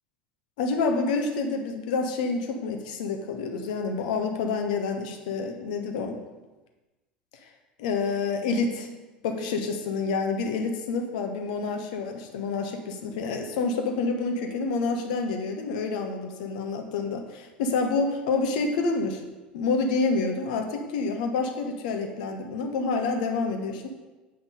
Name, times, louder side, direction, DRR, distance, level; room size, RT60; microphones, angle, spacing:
voice 1, 0.6-6.2 7.8-8.9 9.2-19.2 19.5-23.9, left 4 dB, 60° left, 4 dB, 1.1 m, -28 dB
8.0 x 5.6 x 5.4 m, 1.2 s
figure-of-eight pair, 70°, 5 cm